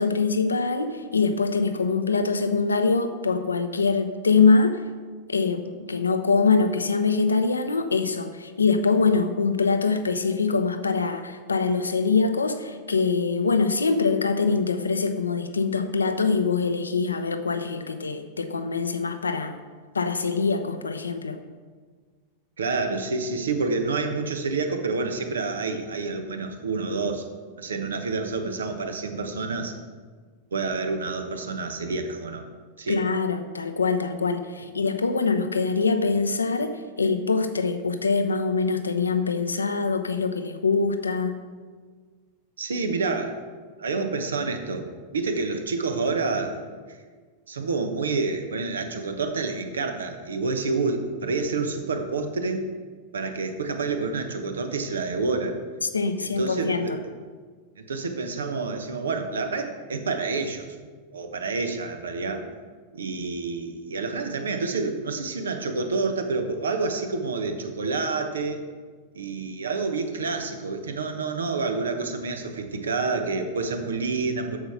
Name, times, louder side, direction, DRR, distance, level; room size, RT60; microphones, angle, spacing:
voice 1, 0.0-4.8 5.3-19.6 19.9-21.4 32.9-41.4 55.9-57.0, left 4 dB, 75° left, 9 dB, 0.7 m, -24 dB
voice 2, 22.6-27.3 27.6-29.7 30.5-32.5 32.8-33.0 42.6-43.4 43.8-44.9 45.1-46.6 46.9-47.0 47.5-52.7 53.1-55.6 56.2-57.0 57.8-60.7 61.1-62.5 62.9-68.6 69.1-74.6, right 3 dB, 70° right, 6 dB, 1.0 m, -28 dB
7.9 x 6.8 x 5.8 m, 1.5 s
figure-of-eight pair, 90°, 0 cm